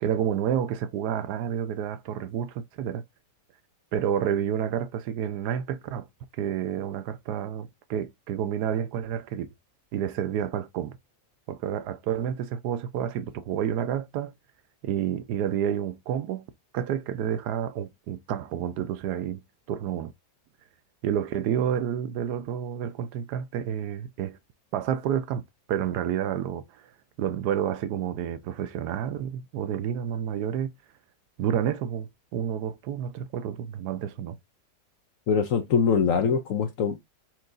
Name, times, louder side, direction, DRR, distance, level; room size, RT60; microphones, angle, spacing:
voice 1, 0.0-3.0 3.9-6.1 6.4-9.5 9.9-11.0 11.5-14.3 14.8-16.5 16.7-19.4 19.7-20.1 21.0-24.4 24.7-26.6 27.2-30.7 31.4-34.4, right 9 dB, 75° right, 1.1 m, -29 dB
voice 2, 35.3-37.0, left 6 dB, 65° left, 0.9 m, -23 dB
4.6 x 2.7 x 3.7 m
omnidirectional pair, 1.8 m